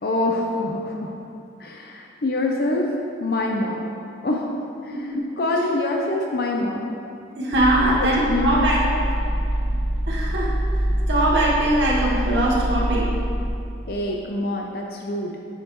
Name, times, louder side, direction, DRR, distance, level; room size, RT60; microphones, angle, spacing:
voice 1, 0.0-1.1 1.6-2.9 3.2-3.8 4.2-4.5 4.8-4.9 5.4-6.9 8.0-9.0 13.9-15.3, left 2 dB, 55° left, 0 dB, 0.5 m, -25 dB
voice 2, 7.4-8.8 10.1-10.8 11.1-13.1, right 1 dB, 70° right, -5 dB, 1.1 m, -21 dB
sound 1, 7.5-13.5, equal, 30° left, 1.1 m, -25 dB
8.6 x 6.6 x 3.0 m, 2.6 s
head